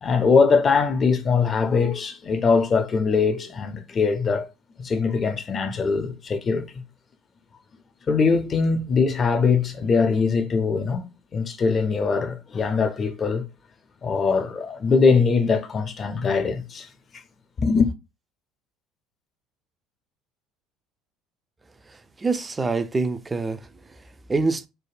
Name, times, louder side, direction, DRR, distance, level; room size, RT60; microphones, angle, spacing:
voice 1, 0.0-4.5 4.8-6.8 8.1-13.4 14.0-16.9 17.6-17.9, left 5 dB, 40° left, 0.5 m, -22 dB
voice 2, 21.8-24.7, right 3 dB, 20° right, 0.4 m, -27 dB
3.3 x 2.1 x 2.5 m
hypercardioid pair, 65°, 0 cm